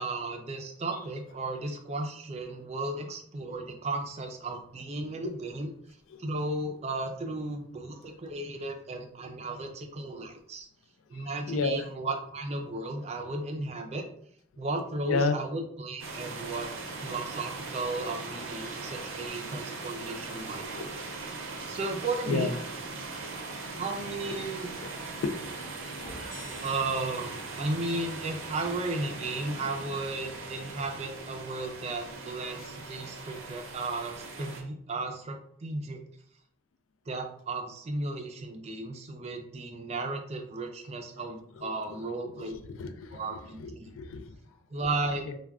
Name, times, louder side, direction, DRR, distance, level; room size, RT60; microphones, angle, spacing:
voice 1, 0.0-5.7 6.2-10.7 11.1-14.0 14.6-16.7 17.0-20.9 21.7-22.5 23.8-24.7 26.5-36.0 37.1-42.5 43.1-43.9 44.7-45.3, right 2 dB, 30° right, 0.4 m, -34 dB
voice 2, 11.1-11.9 15.0-15.3 20.0-20.1 20.5-21.0 22.3-22.5 23.1-23.3 24.3-24.4 24.8-25.4 41.5-44.4 45.3-45.4, left 4 dB, 75° left, 0.3 m, -33 dB
sound 1, 16.0-34.6, right 3 dB, 80° right, 0.6 m, -40 dB
sound 2, 26.0-27.7, left 1 dB, 40° left, 0.8 m, -48 dB
2.3 x 2.2 x 3.5 m
head